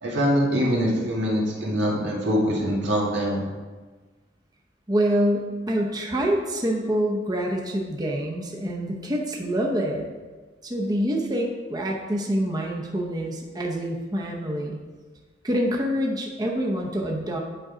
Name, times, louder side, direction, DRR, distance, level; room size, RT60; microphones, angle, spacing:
voice 1, 0.0-3.4, equal, 85° right, -3 dB, 1.8 m, -23 dB
voice 2, 4.9-10.1 10.6-14.8 15.4-17.4, equal, 20° right, -1 dB, 0.7 m, -26 dB
9.0 x 3.8 x 4.9 m, 1.3 s
head